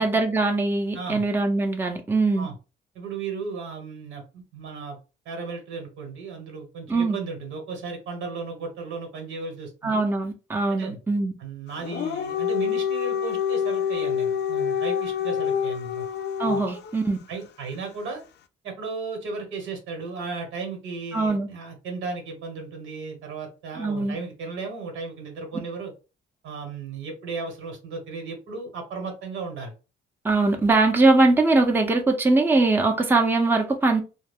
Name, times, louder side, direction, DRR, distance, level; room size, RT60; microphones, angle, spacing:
voice 1, 0.0-2.5 6.9-7.2 9.8-11.3 16.4-17.2 21.1-21.5 23.8-24.2 30.2-34.0, right 3 dB, 10° right, 0.6 m, -21 dB
voice 2, 0.9-1.2 2.4-2.5 2.9-5.0 5.2-10.0 10.7-11.0 11.4-16.0 16.5-16.6 17.3-18.2 18.6-25.9 26.4-29.7, right 4 dB, 85° right, 1.2 m, -35 dB
Dog, 11.8-16.9, left 8 dB, 60° left, 0.4 m, -27 dB
2.3 x 2.1 x 3.4 m
cardioid pair, 90°, 20 cm